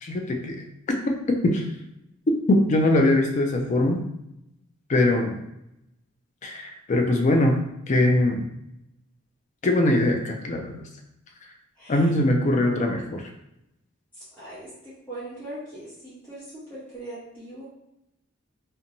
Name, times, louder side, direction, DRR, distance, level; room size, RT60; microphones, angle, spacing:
voice 1, 0.0-0.6 1.1-1.2 1.4-1.6 2.5-4.0 4.9-5.4 6.4-7.6 7.9-8.4 9.6-10.8 11.9-13.2, left 1 dB, 35° left, 3 dB, 0.4 m, -21 dB
voice 2, 14.4-17.6, right 1 dB, 10° left, -12 dB, 0.9 m, -40 dB
2.6 x 2.2 x 2.8 m, 0.85 s
head